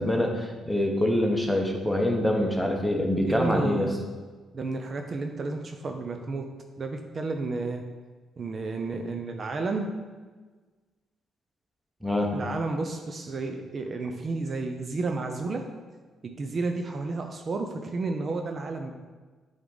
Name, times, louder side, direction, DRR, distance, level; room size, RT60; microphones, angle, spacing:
voice 1, 0.0-3.9 12.0-12.3, left 1 dB, ahead, 1 dB, 1.0 m, -25 dB
voice 2, 3.2-3.9 4.5-6.5 6.8-7.8 8.4-9.9 12.3-15.6 16.2-18.9, right 3 dB, 45° right, 4 dB, 0.5 m, -31 dB
7.9 x 3.6 x 4.0 m, 1.4 s
cardioid pair, 90°, 0 cm